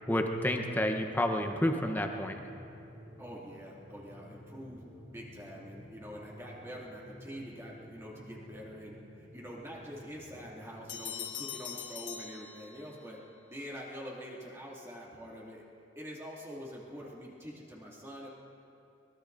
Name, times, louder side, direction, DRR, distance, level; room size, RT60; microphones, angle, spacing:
voice 1, 0.1-2.4, left 1 dB, 10° left, 4 dB, 0.9 m, -30 dB
sound 1, 0.9-11.1, equal, 45° right, 2.2 m, -52 dB
voice 2, 3.2-4.8 5.1-13.2 13.5-15.6 15.9-18.3, equal, 15° right, -4 dB, 2.5 m, -45 dB
sound 2, 10.9-13.1, left 8 dB, 80° left, 1.5 m, -42 dB
23.5 x 21.5 x 2.6 m, 2.7 s
head